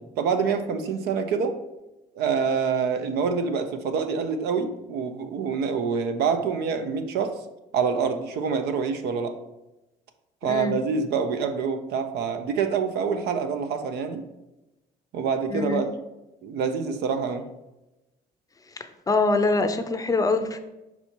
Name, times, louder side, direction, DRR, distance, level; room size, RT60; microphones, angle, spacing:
voice 1, 0.0-1.6 2.1-7.3 7.7-9.3 10.4-14.2 15.1-15.9 16.4-17.4, right 6 dB, 75° right, 7 dB, 0.8 m, -26 dB
voice 2, 10.4-10.8 15.5-15.8 18.8-20.6, left 3 dB, 20° left, 8 dB, 0.5 m, -24 dB
5.5 x 4.4 x 4.5 m, 0.98 s
cardioid pair, 110°, 17 cm